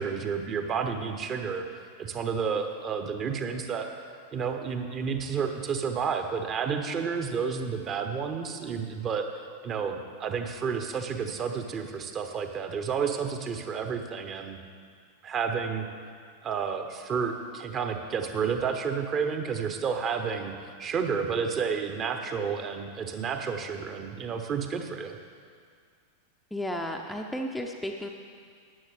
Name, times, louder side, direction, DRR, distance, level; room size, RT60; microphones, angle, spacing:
voice 1, 0.0-1.6 2.0-3.9 4.3-9.3 9.6-14.6 15.2-15.9 16.4-20.5 20.8-25.2, right 6 dB, 30° right, 6 dB, 0.9 m, -30 dB
voice 2, 26.5-28.1, equal, 5° left, 2 dB, 0.6 m, -33 dB
13.5 x 9.7 x 3.2 m, 2.1 s
figure-of-eight pair, 90°, 0 cm